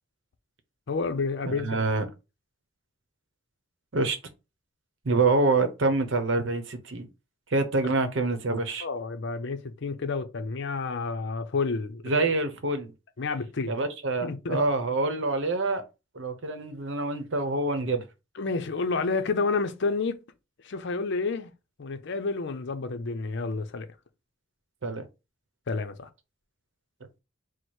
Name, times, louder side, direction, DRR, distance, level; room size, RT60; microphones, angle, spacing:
voice 1, 0.9-1.8 8.8-12.0 13.2-13.7 14.2-14.6 18.3-20.2 20.6-21.5 21.8-23.9 25.7-26.1, left 4 dB, 60° left, 0.6 m, -30 dB
voice 2, 1.5-2.1 3.9-4.2 5.0-7.1 7.5-8.9 12.0-12.9 13.7-15.8 16.1-18.0 24.8-25.0, right 3 dB, 65° right, 0.8 m, -26 dB
4.7 x 2.1 x 4.3 m
head